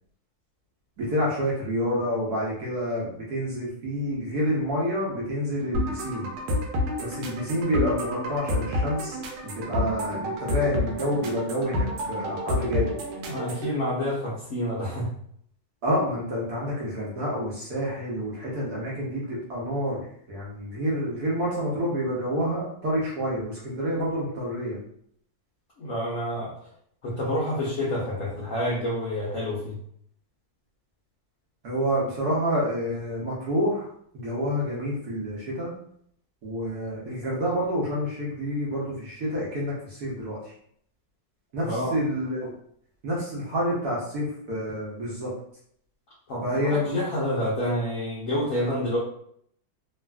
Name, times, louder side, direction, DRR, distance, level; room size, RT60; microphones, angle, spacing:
voice 1, 1.0-6.3 7.0-9.2 9.4-12.9 15.8-20.0 20.3-24.8 31.6-33.9 34.1-35.7 36.4-40.4 41.5-42.5 43.0-45.3 46.4-47.0, equal, 60° right, -5 dB, 1.1 m, -28 dB
sound 1, 5.7-13.7, left 1 dB, 80° right, 1.4 m, -29 dB
voice 2, 13.2-15.1 25.8-26.5 27.0-29.8 41.6-42.0 46.3-49.0, left 1 dB, 70° left, -7 dB, 0.7 m, -28 dB
3.3 x 2.4 x 2.3 m, 0.67 s
omnidirectional pair, 2.2 m